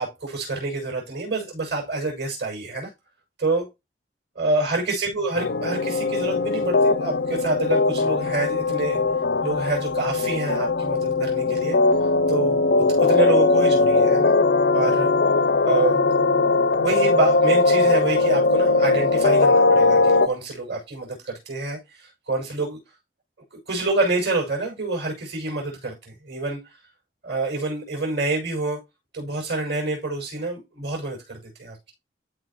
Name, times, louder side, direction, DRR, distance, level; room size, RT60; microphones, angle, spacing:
voice 1, 0.0-2.9 3.4-3.7 4.3-9.0 9.4-11.8 12.3-14.3 14.7-15.1 15.6-16.0 16.8-22.8 23.7-26.6 27.2-28.8 29.1-31.9, right 3 dB, 65° right, 6.0 m, -27 dB
sound 1, 5.3-20.3, left 3 dB, 65° left, 0.6 m, -20 dB
14.0 x 5.2 x 3.0 m
head